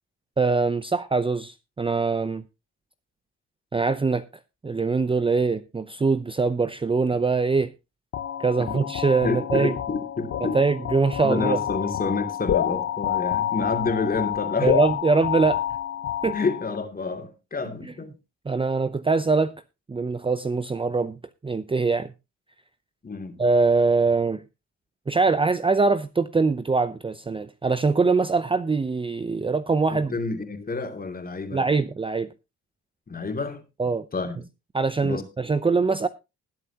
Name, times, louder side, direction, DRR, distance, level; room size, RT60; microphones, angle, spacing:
voice 1, 0.4-2.4 3.7-4.2 4.6-7.7 8.4-9.7 10.5-11.6 14.6-15.6 16.2-16.4 18.5-19.5 19.9-21.2 21.4-22.1 23.4-24.4 25.1-30.1 31.5-32.3 33.8-34.1 34.7-36.1, right 4 dB, 15° right, 0.6 m, -23 dB
sound 1, 8.1-16.8, left 10 dB, 50° left, 0.7 m, -28 dB
voice 2, 9.2-10.6 11.2-14.8 16.3-18.1 23.0-23.4 29.9-31.6 33.1-33.6 34.1-34.4 35.0-35.2, left 4 dB, 30° left, 2.8 m, -29 dB
20.5 x 7.6 x 2.9 m
cardioid pair, 90°, 30 cm